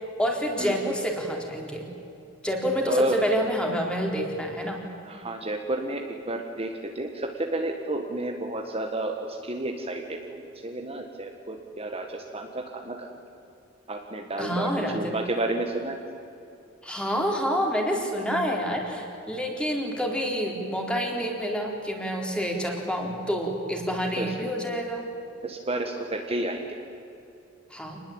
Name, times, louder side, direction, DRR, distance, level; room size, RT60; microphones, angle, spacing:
voice 1, 0.2-1.9 2.4-4.8 14.4-15.2 16.8-25.1 27.7-28.0, equal, 5° left, 0 dB, 4.0 m, -28 dB
voice 2, 2.9-3.2 5.0-13.2 13.9-16.0 23.9-24.3 25.4-26.8, right 2 dB, 30° right, 2 dB, 1.8 m, -31 dB
27.0 x 20.5 x 8.9 m, 2.8 s
head